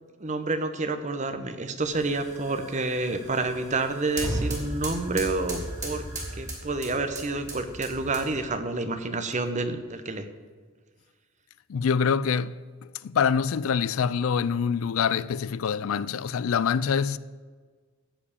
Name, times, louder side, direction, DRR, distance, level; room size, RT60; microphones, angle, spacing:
voice 1, 0.2-6.0 6.4-10.3, right 3 dB, 35° right, 0.9 m, -29 dB
sound 1, 1.8-8.5, right 1 dB, 15° right, 2.7 m, -36 dB
voice 2, 11.7-12.6 13.0-17.2, left 6 dB, 80° left, 0.4 m, -25 dB
14.5 x 4.8 x 8.6 m
head